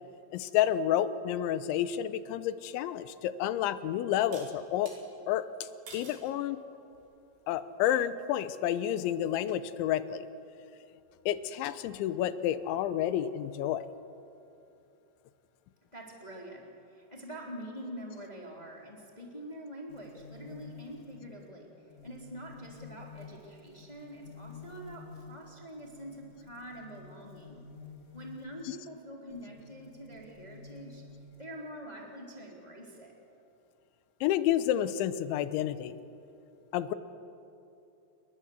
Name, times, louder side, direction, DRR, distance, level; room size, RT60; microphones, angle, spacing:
voice 1, 0.3-4.9 5.3-5.5 5.9-6.6 7.5-10.3 11.3-13.9 28.7-28.8 34.2-36.0 36.7-36.9, left 11 dB, 90° left, 13 dB, 3.3 m, -30 dB
sound 1, 3.0-3.1 4.3-5.0 5.9-6.3 6.9-7.3, right 3 dB, 90° right, 7.2 m, -49 dB
voice 2, 15.9-27.6 28.1-31.1 31.4-33.2, equal, 10° left, -1 dB, 2.9 m, -45 dB
sound 2, 19.9-28.7 29.3-31.4, left 4 dB, 55° left, 0.8 m, -51 dB
28.5 x 22.0 x 8.0 m, 2.8 s
omnidirectional pair, 5.3 m